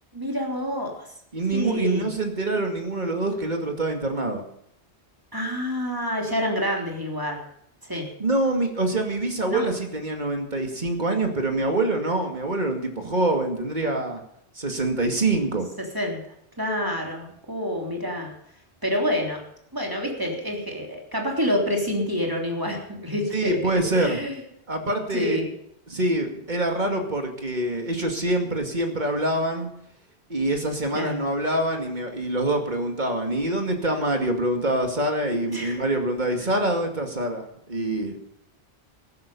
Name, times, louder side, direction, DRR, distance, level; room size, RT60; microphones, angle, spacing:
voice 1, 0.1-1.0 1.5-2.1 5.3-7.4 7.9-8.1 9.5-9.6 15.9-16.2 16.6-18.3 18.8-19.4 19.7-24.4 25.1-25.5 30.9-31.2 35.5-35.8, equal, 20° right, 0 dB, 3.3 m, -27 dB
voice 2, 1.3-4.4 8.2-14.2 14.6-15.7 23.3-24.2 24.7-25.4 25.9-29.7 30.3-38.2, right 1 dB, 40° right, 4 dB, 2.5 m, -25 dB
15.0 x 12.0 x 5.5 m, 0.73 s
omnidirectional pair, 1.1 m